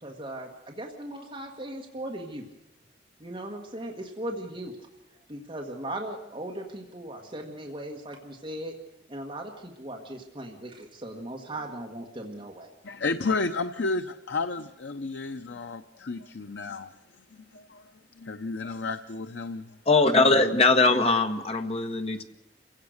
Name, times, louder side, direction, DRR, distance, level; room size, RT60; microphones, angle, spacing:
voice 1, 0.0-2.5 3.2-4.8 5.3-8.7 9.1-12.7, right 1 dB, 30° right, 1.6 m, -38 dB
voice 2, 12.8-16.9 17.3-17.8 18.2-19.7 20.2-20.6, left 3 dB, 80° left, 0.7 m, -32 dB
voice 3, 19.9-22.2, left 3 dB, 35° left, 1.4 m, -21 dB
27.5 x 16.5 x 6.5 m
head